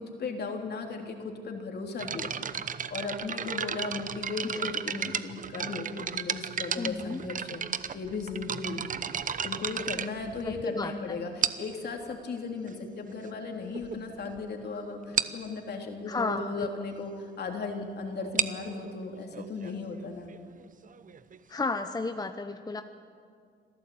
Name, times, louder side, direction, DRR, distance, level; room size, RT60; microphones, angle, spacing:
voice 1, 0.0-2.4 2.9-8.9 9.4-20.3, left 4 dB, 55° left, 3 dB, 3.4 m, -36 dB
sound 1, 2.0-10.8 11.4-11.8 12.7-12.8 13.4-13.5 13.7-14.0 14.3-14.4 14.6-14.7 15.2-15.5 18.1-21.6, right 7 dB, 40° right, 0.9 m, -34 dB
voice 2, 6.8-7.2 10.4-11.2 16.1-16.7 21.5-22.8, left 3 dB, 20° left, 8 dB, 0.9 m, -33 dB
26.0 x 14.5 x 8.7 m, 2.2 s
cardioid pair, 90°, 20 cm